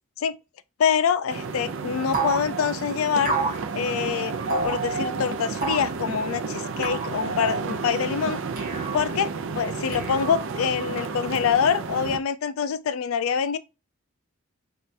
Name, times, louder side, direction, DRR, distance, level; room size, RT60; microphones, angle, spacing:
voice 1, 0.8-3.3 3.7-4.4 4.6-8.4 8.9-13.6, left 7 dB, 85° left, 0.4 m, -25 dB
sound 1, 1.3-12.2, right 4 dB, 70° right, 0.5 m, -31 dB
sound 2, 2.1-2.5 3.2-3.6 4.5-4.8 5.6-5.9 6.8-7.2 8.6-9.1 9.9-10.6, right 3 dB, 40° right, 1.2 m, -29 dB
3.2 x 2.4 x 4.2 m
head